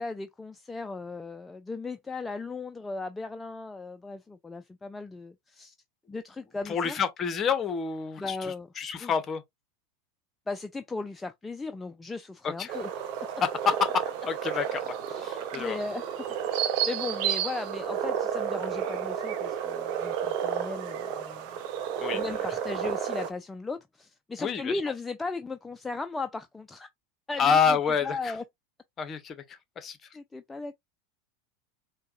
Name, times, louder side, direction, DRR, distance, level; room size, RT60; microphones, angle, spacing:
voice 1, 0.0-5.7 6.1-7.0 8.2-8.7 9.0-9.1 10.5-13.0 15.1-15.2 15.5-16.0 16.8-21.6 22.1-26.9 27.3-27.8 28.0-28.4 30.1-30.7, left 3 dB, 15° left, 0.3 m, -36 dB
voice 2, 6.7-9.4 12.4-12.7 13.4-14.9 15.2-15.8 22.0-22.2 24.4-24.7 27.4-28.3 29.0-29.4 29.8-30.0, left 6 dB, 35° left, 0.7 m, -28 dB
sound 1, 12.7-23.3, right 9 dB, 55° right, 0.6 m, -31 dB
4.5 x 2.1 x 2.5 m
hypercardioid pair, 90°, 0 cm